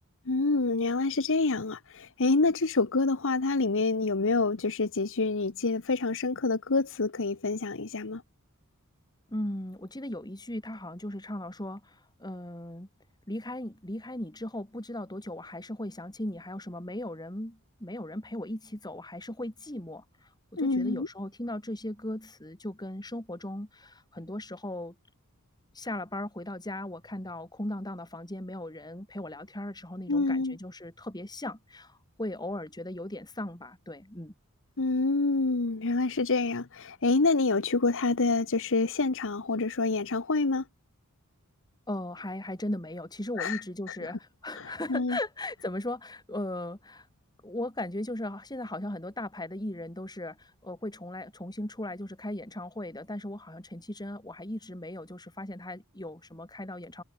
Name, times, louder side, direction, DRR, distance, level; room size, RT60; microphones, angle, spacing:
voice 1, 0.3-8.2 20.6-21.1 30.1-30.6 34.8-40.6 43.4-43.6 43.9-44.0 44.5-45.2, left 3 dB, 60° left, 1.1 m, -27 dB
voice 2, 9.3-12.9 13.3-25.0 25.7-34.3 41.9-47.1 47.4-57.0, left 1 dB, 20° left, 3.6 m, -37 dB
head